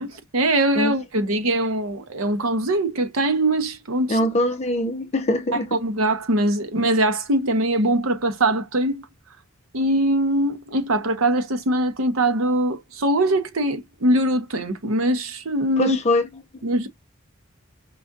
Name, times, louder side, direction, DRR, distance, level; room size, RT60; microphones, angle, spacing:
voice 1, 0.0-4.2 5.7-9.0 9.7-16.0 16.6-16.9, right 1 dB, 75° right, 0.9 m, -22 dB
voice 2, 4.1-5.8 15.8-16.2 16.5-16.6, left 1 dB, 30° left, 0.5 m, -22 dB
5.0 x 2.6 x 2.3 m
head